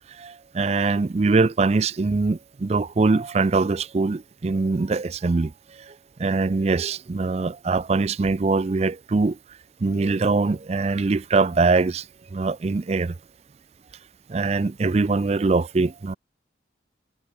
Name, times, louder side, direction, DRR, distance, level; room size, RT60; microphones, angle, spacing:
voice 1, 0.2-5.5 6.2-9.4 9.8-12.0 12.3-13.1 14.3-16.1, right 3 dB, 35° right, 0.4 m, -22 dB
head